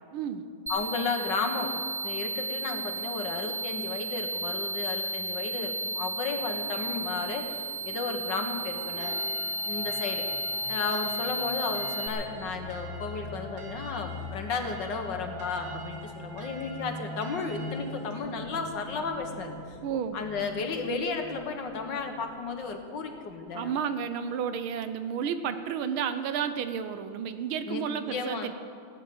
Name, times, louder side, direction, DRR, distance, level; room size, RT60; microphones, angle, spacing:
voice 1, 0.1-0.5 19.8-20.2 23.5-28.5, right 7 dB, 80° right, 10 dB, 1.6 m, -31 dB
voice 2, 0.7-9.2 9.7-10.2 10.7-19.8 20.1-23.7 27.7-27.8 28.1-28.5, left 4 dB, 60° left, 5 dB, 1.9 m, -33 dB
sound 1, 0.7-12.1, right 1 dB, 10° right, 1.4 m, -33 dB
sound 2, 6.3-23.4, left 2 dB, 35° left, 3.4 m, -44 dB
sound 3, 8.7-18.2, right 2 dB, 65° right, 2.3 m, -46 dB
17.0 x 10.0 x 7.8 m, 2.3 s
omnidirectional pair, 2.2 m